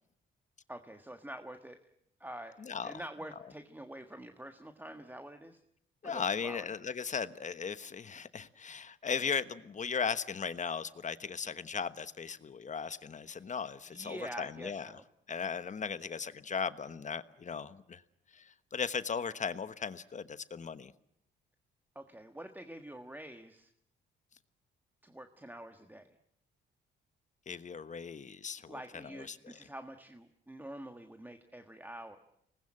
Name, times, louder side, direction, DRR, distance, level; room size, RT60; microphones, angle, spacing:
voice 1, 0.7-1.8 2.2-2.6 2.8-5.6 6.0-6.6 13.3-13.4 13.9-15.0 21.9-23.7 25.0-26.1 28.7-32.2, right 1 dB, 10° right, 1.6 m, -46 dB
voice 2, 2.6-2.9 6.0-14.9 15.3-18.0 18.3-20.9 27.5-29.6, left 6 dB, 40° left, 1.2 m, -37 dB
25.5 x 20.0 x 8.8 m
cardioid pair, 90°, 20 cm